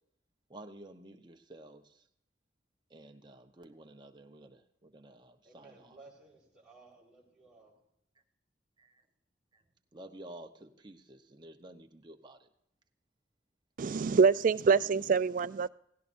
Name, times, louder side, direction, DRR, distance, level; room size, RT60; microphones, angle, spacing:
voice 1, 0.5-2.0 2.9-6.0 8.8-9.0 9.5-9.6 9.9-12.5, right 1 dB, 25° right, 0.8 m, -52 dB
voice 2, 5.4-7.8, right 3 dB, 5° right, 4.3 m, -57 dB
voice 3, 13.8-15.7, right 5 dB, 45° right, 0.4 m, -25 dB
17.0 x 16.5 x 2.6 m
head